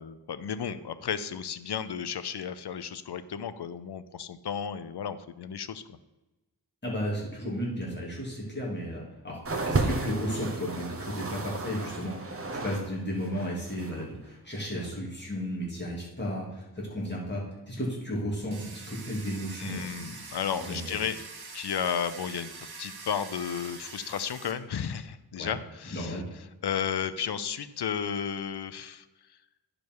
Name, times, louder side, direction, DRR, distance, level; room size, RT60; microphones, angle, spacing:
voice 1, 0.0-6.0 19.6-21.2 21.5-22.5 22.8-26.2 26.6-29.1, left 8 dB, 75° left, 13 dB, 0.6 m, -33 dB
voice 2, 6.8-9.4 9.7-20.1 20.6-20.8 25.4-25.5 25.8-26.2, equal, 25° left, -5 dB, 2.9 m, -34 dB
sound 1, 9.4-12.9 13.1-14.0 14.8-14.9, right 3 dB, 35° right, 0.9 m, -33 dB
Domestic sounds home sounds, 18.5-24.5, right 4 dB, 70° right, 1.3 m, -44 dB
10.5 x 5.1 x 4.7 m, 1.1 s
wide cardioid pair, 105°, 40 cm